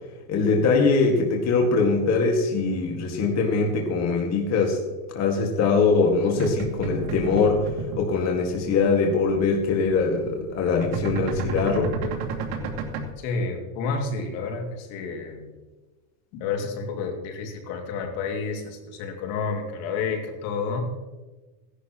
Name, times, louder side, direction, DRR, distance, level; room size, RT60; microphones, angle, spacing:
voice 1, 0.3-4.8 5.1-7.6 8.0-11.9, left 4 dB, 35° left, 1 dB, 2.0 m, -22 dB
sound 1, 6.3-8.2 8.5-8.9 9.1-9.4 9.6-13.1, right 3 dB, 65° right, 2.7 m, -31 dB
voice 2, 13.2-15.5 16.3-20.9, left 4 dB, 65° left, 3 dB, 2.6 m, -30 dB
16.5 x 11.5 x 3.1 m, 1.2 s
supercardioid pair, 135°, 45 cm